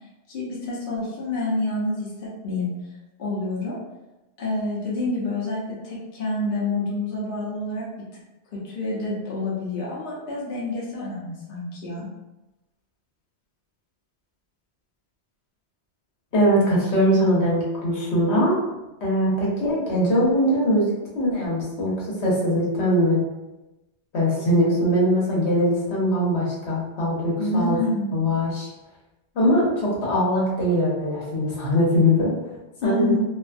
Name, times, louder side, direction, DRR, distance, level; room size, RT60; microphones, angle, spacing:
voice 1, 0.3-2.7 3.2-3.8 4.4-8.0 8.6-12.1 27.4-28.1 32.8-33.2, left 2 dB, 60° left, -6 dB, 0.9 m, -28 dB
voice 2, 16.3-18.5 19.0-21.9 22.2-23.2 24.1-27.8 28.1-28.7 29.3-32.3 32.8-33.1, equal, 80° left, -5 dB, 1.1 m, -21 dB
2.5 x 2.4 x 2.4 m, 1.0 s
omnidirectional pair, 1.1 m